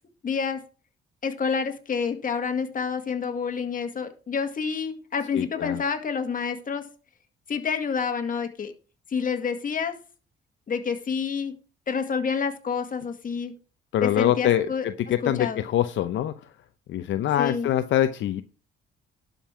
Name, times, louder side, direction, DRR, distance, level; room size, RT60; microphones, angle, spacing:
voice 1, 0.2-0.6 1.2-6.8 7.5-8.7 9.1-10.0 10.7-11.5 11.9-13.5 14.0-14.9 15.2-15.6 17.4-17.7, left 6 dB, 45° left, 6 dB, 2.0 m, -28 dB
voice 2, 5.3-5.8 13.9-16.3 16.9-18.4, left 11 dB, 70° left, 10 dB, 0.7 m, -24 dB
12.0 x 5.4 x 6.0 m, 0.36 s
cardioid pair, 90°, 20 cm